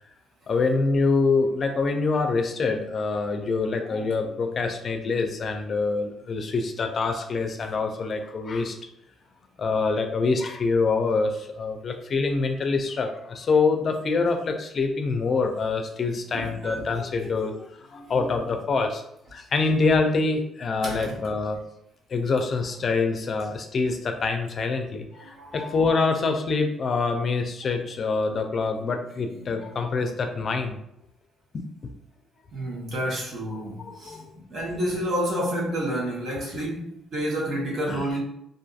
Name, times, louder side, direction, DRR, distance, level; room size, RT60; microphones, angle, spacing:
voice 1, 0.5-8.8 9.6-19.0 19.3-21.6 22.1-30.8 31.5-31.9 33.5-34.4 37.8-38.0, left 4 dB, 50° left, 5 dB, 0.4 m, -25 dB
voice 2, 16.3-16.8 20.8-21.1 25.1-25.9 32.5-34.2 34.5-38.2, equal, 60° right, -4 dB, 1.1 m, -29 dB
2.5 x 2.5 x 2.4 m, 0.77 s
supercardioid pair, 70°, 0 cm